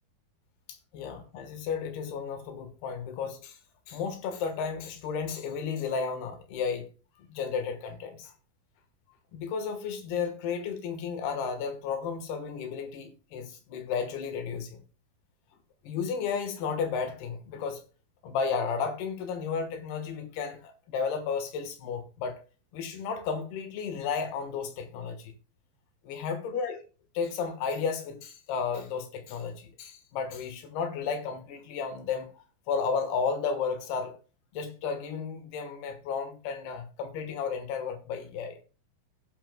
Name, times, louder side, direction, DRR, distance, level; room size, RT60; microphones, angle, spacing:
voice 1, 0.7-3.6 3.9-6.9 7.2-8.3 9.3-14.8 15.9-17.8 18.2-22.4 22.7-25.3 26.1-26.8 27.2-32.3 32.7-34.2 34.5-38.6, left 6 dB, 85° left, 3.4 m, -33 dB
16.0 x 10.0 x 2.2 m
omnidirectional pair, 4.4 m